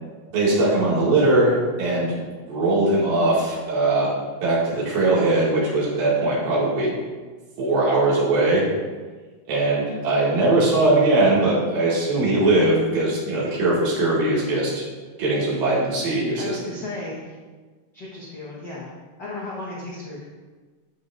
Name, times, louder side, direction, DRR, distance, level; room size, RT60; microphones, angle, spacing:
voice 1, 0.3-2.2 2.5-4.1 4.4-6.9 7.6-8.7 9.5-14.8 15.2-16.6, right 2 dB, 85° right, -7 dB, 4.0 m, -20 dB
voice 2, 16.4-17.4 17.9-18.9 19.2-20.2, left 2 dB, 65° left, -7 dB, 1.0 m, -35 dB
12.0 x 6.0 x 2.6 m, 1.4 s
omnidirectional pair, 3.9 m